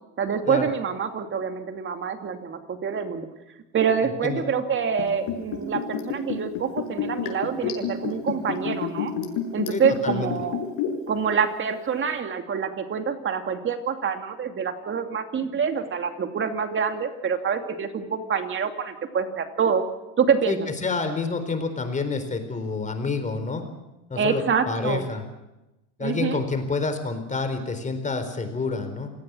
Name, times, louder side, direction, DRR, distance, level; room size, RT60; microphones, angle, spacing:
voice 1, 0.2-3.3 3.7-9.1 9.5-10.6 11.1-19.8 20.2-20.7 24.2-25.0 26.0-26.4, right 6 dB, 25° right, 6 dB, 2.7 m, -26 dB
voice 2, 4.0-4.5 9.7-10.3 20.5-23.6 24.1-25.2 26.0-29.1, left 4 dB, 15° left, 8 dB, 4.2 m, -28 dB
Liquid, 4.9-11.1 11.4-11.5, left 8 dB, 55° left, 6.8 m, -29 dB
28.0 x 18.5 x 6.4 m, 0.98 s
supercardioid pair, 120°, 44 cm